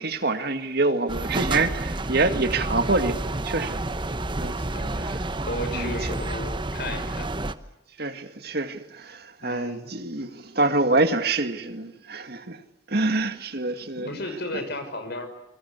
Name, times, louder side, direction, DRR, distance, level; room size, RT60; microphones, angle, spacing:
voice 1, 0.0-3.2 3.4-3.8 4.4-4.6 5.7-5.9 8.0-12.6 12.9-14.1, right 2 dB, 55° right, 2.1 m, -26 dB
sound 1, 1.1-7.5, right 2 dB, 25° right, 1.1 m, -29 dB
voice 2, 4.6-5.1 5.5-7.3 9.4-9.9 13.9-15.3, left 1 dB, 60° left, 6.1 m, -34 dB
27.5 x 24.0 x 8.3 m
head